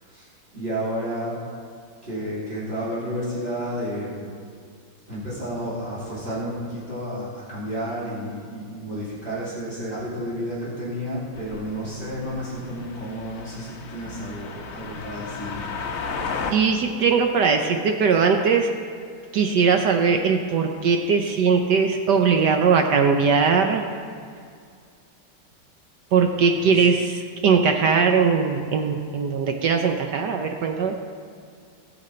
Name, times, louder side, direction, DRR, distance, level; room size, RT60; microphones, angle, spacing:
voice 1, 0.5-1.4 2.0-4.3 5.1-15.7 26.6-26.7, equal, 25° right, -8 dB, 3.3 m, -31 dB
sound 1, 11.3-16.5, left 5 dB, 55° left, 1.1 m, -34 dB
voice 2, 16.5-18.7 19.3-23.9 26.1-31.0, right 5 dB, 65° right, 4 dB, 1.2 m, -20 dB
19.0 x 6.7 x 4.3 m, 2.3 s
omnidirectional pair, 2.1 m